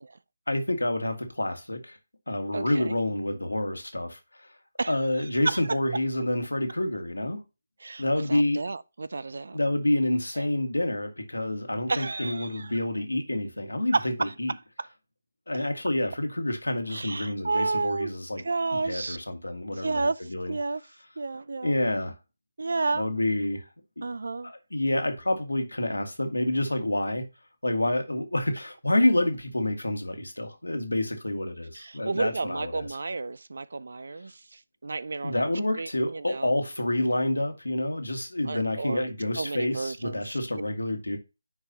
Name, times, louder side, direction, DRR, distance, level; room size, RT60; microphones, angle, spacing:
voice 1, 0.5-2.0 2.3-4.5 4.9-7.4 8.0-8.6 9.5-14.5 15.5-18.4 18.8-20.5 21.6-22.1 22.9-23.7 24.0-24.1 24.4-27.3 27.6-32.9 35.2-41.2, left 1 dB, 90° left, 1.8 m, -28 dB
voice 2, 2.5-3.0 4.8-5.0 5.4-5.6 7.8-9.6 10.4-10.5 11.9-12.7 13.9-14.3 14.8-14.9 15.6-15.7 16.9-18.1 18.4-19.2 19.7-20.2 20.5-20.8 21.2-21.7 22.6-23.1 24.0-24.5 31.7-36.5 38.5-39.1 39.4-40.4, right 3 dB, 65° right, 0.4 m, -31 dB
9.8 x 4.8 x 2.9 m
figure-of-eight pair, 155°, 0 cm